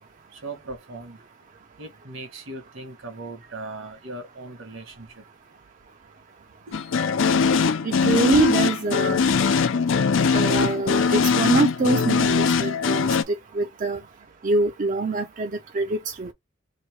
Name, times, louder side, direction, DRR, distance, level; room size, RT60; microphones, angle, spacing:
voice 1, 0.3-1.2 1.8-5.1 6.7-6.8, right 2 dB, 70° right, 1.2 m, -38 dB
sound 1, 6.7-13.2, left 5 dB, 65° left, 0.5 m, -21 dB
voice 2, 7.8-9.3 10.3-14.0 14.4-16.3, right 3 dB, 40° right, 0.5 m, -25 dB
3.1 x 2.6 x 4.4 m
head